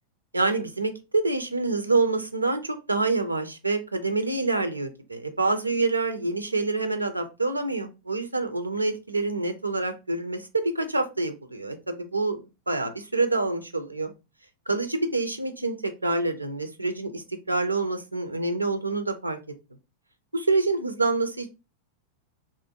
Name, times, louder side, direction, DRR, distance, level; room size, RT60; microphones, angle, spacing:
voice 1, 0.3-14.1 14.7-19.4 20.3-21.5, right 3 dB, 85° right, 8 dB, 0.4 m, -27 dB
2.5 x 2.0 x 2.7 m, 0.27 s
figure-of-eight pair, 90°, 0 cm